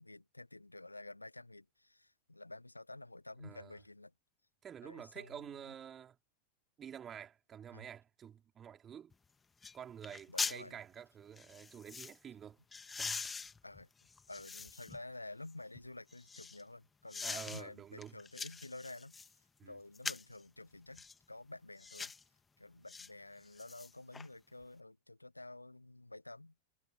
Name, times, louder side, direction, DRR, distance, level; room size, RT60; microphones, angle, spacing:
voice 1, 0.0-4.1 4.8-5.4 7.7-7.9 10.3-10.8 13.6-13.9 14.3-19.3 19.6-22.1 22.6-26.5, left 2 dB, 85° left, 1.5 m, -50 dB
voice 2, 3.4-3.7 4.6-6.2 6.8-9.1 9.7-12.6 13.0-13.3 17.2-18.2 19.6-19.8, right 8 dB, 25° right, 5.0 m, -49 dB
sound 1, 9.1-9.2 9.6-9.8 10.0-10.6 11.4-12.2 12.7-15.0 15.5-16.6 17.1-17.6 18.0-19.3 19.9-20.4 20.9-21.2 21.8-22.2 22.9-23.1 23.4-24.3 24.6-24.7, left 5 dB, 15° left, 2.1 m, -43 dB
figure-of-eight pair, 90°, 0 cm